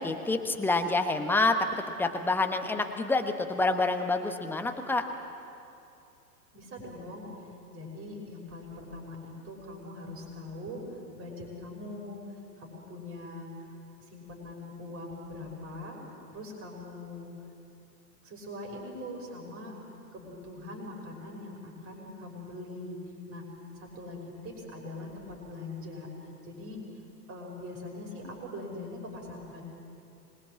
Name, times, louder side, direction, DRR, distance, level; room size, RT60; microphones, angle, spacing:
voice 1, 0.0-5.0, left 3 dB, 5° left, 6 dB, 1.1 m, -27 dB
voice 2, 6.5-7.2 7.7-12.2 12.6-13.5 14.1-16.0 16.3-17.3 18.2-19.7 20.1-23.0 23.3-23.4 23.7-26.1 26.4-26.8 27.3-29.6, left 1 dB, 25° right, 1 dB, 5.9 m, -42 dB
26.0 x 21.5 x 7.6 m, 2.7 s
figure-of-eight pair, 105°, 50 cm